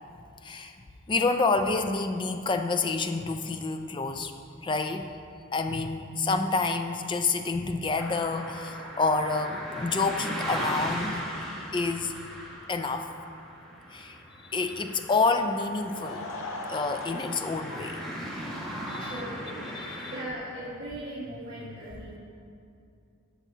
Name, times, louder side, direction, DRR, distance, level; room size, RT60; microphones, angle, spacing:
voice 1, 0.4-0.7 1.1-4.3 4.6-5.1 5.5-11.2 11.7-12.1 12.7-13.1 13.9-14.2 14.5-16.3 16.7-18.0 18.9-19.2 19.7-20.1, left 3 dB, 20° left, 7 dB, 0.3 m, -28 dB
sound 1, 8.0-20.3, equal, ahead, 1.1 m, -38 dB
Laughter / Crowd, 15.7-20.1, left 2 dB, 65° left, 0.7 m, -41 dB
voice 2, 19.0-19.6 20.0-22.2, right 1 dB, 60° right, -9 dB, 1.6 m, -39 dB
13.5 x 6.1 x 2.8 m, 2.5 s
head